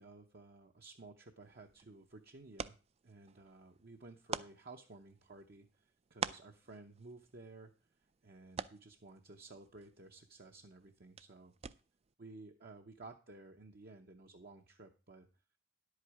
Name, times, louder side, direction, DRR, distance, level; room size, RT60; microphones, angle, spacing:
voice 1, 0.0-2.7 3.0-7.7 8.2-11.5 12.2-15.3, right 3 dB, 50° right, 4 dB, 0.8 m, -55 dB
sound 1, 1.4-12.1, right 6 dB, 30° right, 0.4 m, -48 dB
10.5 x 8.2 x 4.7 m, 0.34 s
head